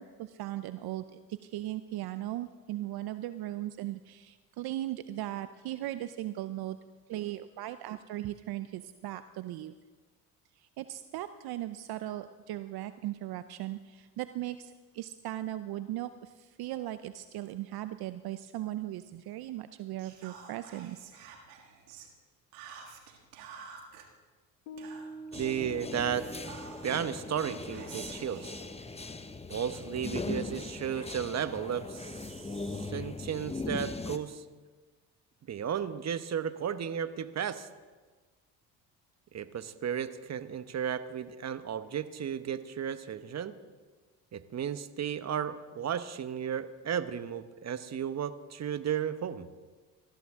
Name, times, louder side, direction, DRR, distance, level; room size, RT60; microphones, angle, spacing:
voice 1, 0.0-6.8 7.1-9.7 10.6-21.1, right 14 dB, 60° right, 12 dB, 0.7 m, -38 dB
Whispering, 20.0-22.1 22.5-24.1 24.8-25.6 26.2-27.1 27.7-29.6, right 7 dB, 90° right, 1.8 m, -50 dB
Piano, 24.7-31.4, right 2 dB, 85° left, 1.5 m, -49 dB
sound 1, 25.3-34.2, left 3 dB, 15° left, 1.0 m, -40 dB
voice 2, 25.3-26.3 26.8-28.5 29.5-34.4 35.5-37.7 39.3-43.5 44.3-49.5, right 8 dB, 40° right, 12 dB, 1.0 m, -34 dB
20.0 x 13.5 x 3.7 m, 1.3 s
supercardioid pair, 65°, 42 cm